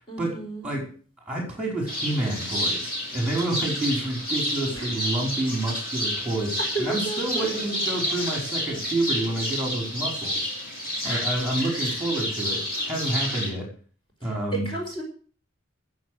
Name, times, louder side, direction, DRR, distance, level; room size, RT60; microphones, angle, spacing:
voice 1, 0.1-0.7 4.7-5.0 6.6-7.6 11.0-12.0 14.2-15.0, right 3 dB, 25° left, 0 dB, 4.7 m, -34 dB
voice 2, 1.2-10.5 11.0-13.7 14.2-14.7, right 2 dB, 5° right, 0 dB, 5.1 m, -28 dB
sound 1, 1.9-13.5, left 1 dB, 45° left, 6.5 m, -30 dB
14.0 x 7.5 x 7.8 m, 0.41 s
head